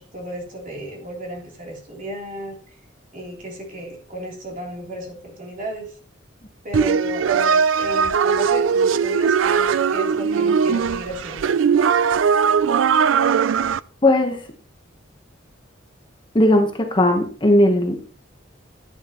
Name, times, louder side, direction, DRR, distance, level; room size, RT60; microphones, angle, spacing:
voice 1, 0.0-2.5 3.1-5.9 6.6-11.5, right 1 dB, 45° right, -1 dB, 3.3 m, -33 dB
sound 1, 6.7-13.8, right 6 dB, 75° right, 0.4 m, -19 dB
voice 2, 14.0-14.4 16.3-18.0, left 1 dB, 25° left, 4 dB, 1.1 m, -17 dB
11.0 x 9.1 x 3.0 m, 0.44 s
head